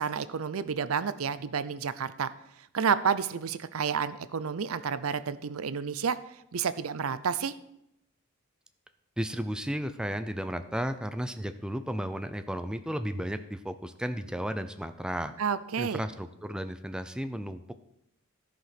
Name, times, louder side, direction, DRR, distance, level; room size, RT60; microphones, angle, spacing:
voice 1, 0.0-2.3 2.7-6.2 6.5-7.5 15.4-16.0, right 6 dB, 80° right, 14 dB, 0.6 m, -30 dB
voice 2, 9.2-15.3 15.8-17.8, equal, 5° right, 9 dB, 0.4 m, -34 dB
14.0 x 5.2 x 5.8 m, 0.79 s
head